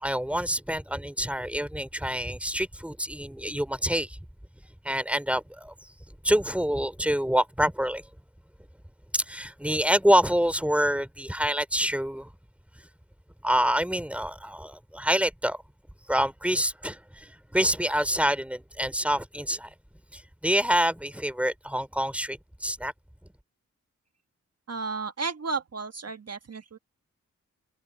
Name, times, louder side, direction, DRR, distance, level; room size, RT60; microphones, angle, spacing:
voice 1, 0.0-4.2 4.8-5.7 6.2-8.0 9.1-12.3 13.4-15.6 16.1-19.7 20.1-22.9, equal, 5° right, 3.1 m, -26 dB
voice 2, 24.7-26.8, right 4 dB, 50° right, 1.4 m, -33 dB
cardioid pair, 50°, 31 cm